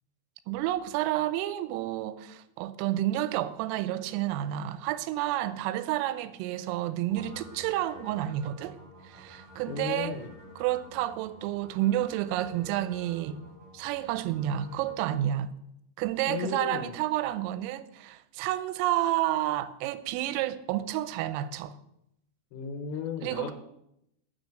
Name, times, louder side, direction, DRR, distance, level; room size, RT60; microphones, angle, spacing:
voice 1, 0.5-8.8 9.0-10.2 10.6-13.4 13.7-15.5 16.0-21.8 23.2-23.5, right 13 dB, 90° right, 3.2 m, -30 dB
sound 1, 7.1-15.0, left 1 dB, 50° right, 1.7 m, -50 dB
voice 2, 9.7-10.3 16.3-16.9 22.5-23.5, left 6 dB, 90° left, 3.3 m, -35 dB
10.5 x 5.2 x 7.6 m
omnidirectional pair, 5.8 m